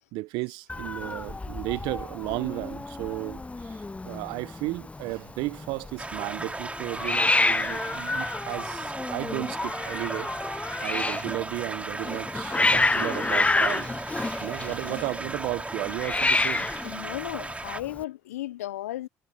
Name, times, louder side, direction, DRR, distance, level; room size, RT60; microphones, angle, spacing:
voice 1, 0.1-10.3 10.8-13.9 14.4-16.7, right 22 dB, 70° right, 0.9 m, -34 dB
Hiss, 0.7-18.0, left 3 dB, 15° left, 0.6 m, -29 dB
sound 1, 6.0-17.8, right 2 dB, 15° right, 4.2 m, -36 dB
voice 2, 16.8-19.1, left 14 dB, 85° left, 0.5 m, -35 dB
hypercardioid pair, 55°, 8 cm